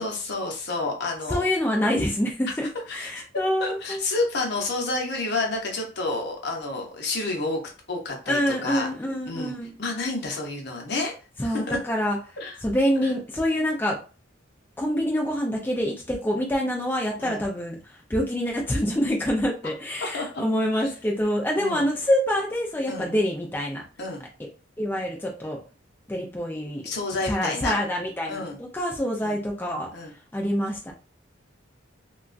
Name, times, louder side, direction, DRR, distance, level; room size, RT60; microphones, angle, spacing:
voice 1, 0.0-1.4 2.9-7.6 7.9-8.9 9.3-9.5 9.8-11.1 11.4-11.8 12.4-12.6 17.2-17.4 20.0-20.4 20.8-20.9 21.6-21.9 22.9-23.1 24.0-24.2 26.8-27.8 28.3-28.6 29.2-29.4 29.9-30.1, left 3 dB, 60° left, 1 dB, 0.8 m, -30 dB
voice 2, 1.3-4.0 8.3-9.7 11.4-12.2 12.6-14.0 14.8-23.8 24.8-25.6 26.1-26.9 27.3-29.9 30.3-30.9, equal, 10° left, -1 dB, 0.4 m, -26 dB
2.9 x 2.3 x 2.5 m, 0.34 s
head